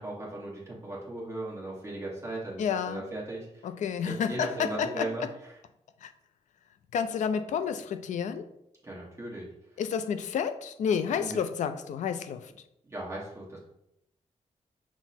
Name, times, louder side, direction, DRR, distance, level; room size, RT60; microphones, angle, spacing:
voice 1, 0.0-3.6 4.1-5.2 8.8-9.5 11.1-11.4 12.8-13.6, right 2 dB, 25° right, 1.1 m, -37 dB
voice 2, 2.6-3.0 3.6-5.3 6.0-6.1 6.9-8.5 9.8-12.5, left 7 dB, 85° left, 0.4 m, -30 dB
5.9 x 2.0 x 4.1 m
wide cardioid pair, 130°, 12 cm